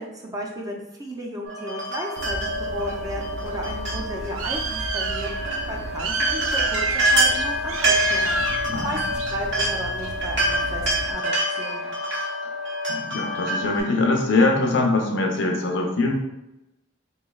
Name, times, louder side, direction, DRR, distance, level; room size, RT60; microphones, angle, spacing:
voice 1, 0.0-5.3 5.7-8.4 8.8-9.0 9.3-11.9, equal, 20° right, -1 dB, 0.5 m, -34 dB
sound 1, 1.4-13.8, right 1 dB, 60° right, 1.2 m, -26 dB
Bird, 2.2-11.1, right 3 dB, 85° right, 0.4 m, -32 dB
voice 2, 13.0-16.2, left 2 dB, 65° left, 2 dB, 0.6 m, -22 dB
3.8 x 3.1 x 2.3 m, 0.91 s
head